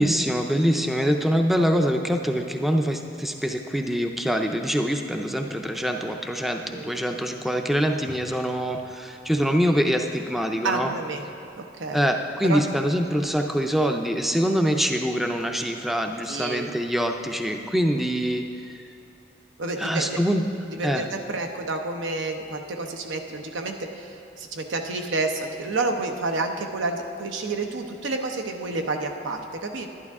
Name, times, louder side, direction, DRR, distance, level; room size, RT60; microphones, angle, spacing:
voice 1, 0.0-10.9 11.9-18.8 19.8-20.5 20.8-21.0, equal, ahead, 4 dB, 0.4 m, -24 dB
voice 2, 10.6-11.3 11.6-12.1 12.4-12.6 16.3-16.7 19.6-20.2 20.6-29.9, right 3 dB, 85° right, 4 dB, 0.8 m, -29 dB
11.5 x 11.0 x 3.6 m, 2.7 s
head